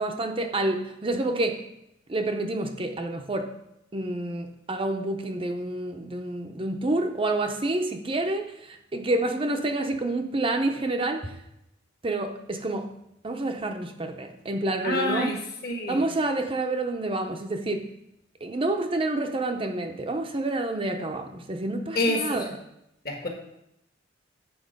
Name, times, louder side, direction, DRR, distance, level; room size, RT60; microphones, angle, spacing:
voice 1, 0.0-1.6 2.1-3.5 3.9-11.4 12.0-12.9 13.2-15.3 15.9-17.9 18.4-22.5, right 2 dB, 25° right, 4 dB, 0.6 m, -28 dB
voice 2, 14.8-15.4 15.6-16.0 21.9-22.4 23.0-23.3, left 1 dB, 50° left, 1 dB, 1.6 m, -27 dB
8.7 x 4.4 x 5.2 m, 0.82 s
head